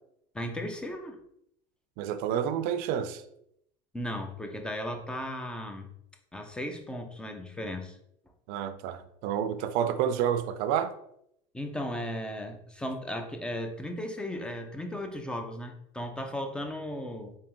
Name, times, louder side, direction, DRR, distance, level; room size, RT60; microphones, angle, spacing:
voice 1, 0.3-1.2 3.9-5.9 6.3-8.0 11.5-17.4, left 1 dB, 5° left, 5 dB, 0.5 m, -36 dB
voice 2, 2.0-3.2 8.5-10.9, right 9 dB, 60° right, 10 dB, 0.5 m, -29 dB
3.4 x 2.9 x 3.0 m, 0.74 s
supercardioid pair, 120°, 16 cm